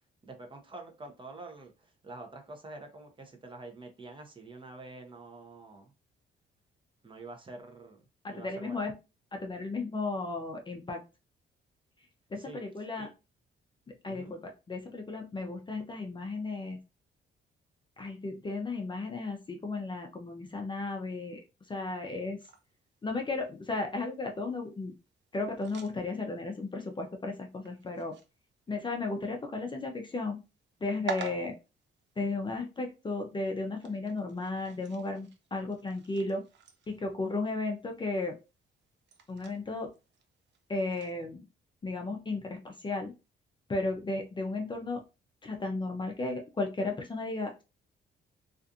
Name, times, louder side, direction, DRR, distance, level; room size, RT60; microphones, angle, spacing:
voice 1, 0.2-5.9 7.0-8.0 8.3-8.9 12.4-12.6 13.0-13.1 14.1-14.3, right 2 dB, 25° right, 3 dB, 0.6 m, -47 dB
voice 2, 8.2-8.9 9.3-11.0 12.3-13.1 13.9-16.8 18.0-21.4 21.7-22.4 23.0-24.9 25.3-28.1 28.7-30.4 30.8-31.5 32.2-36.4 36.9-38.3 39.3-39.9 40.7-41.4 41.8-43.1 43.7-45.0 45.4-47.6, left 3 dB, 25° left, 3 dB, 0.5 m, -34 dB
sound 1, 22.4-41.2, right 6 dB, 65° right, 0.6 m, -50 dB
2.5 x 2.4 x 2.6 m, 0.29 s
cardioid pair, 90°, 20 cm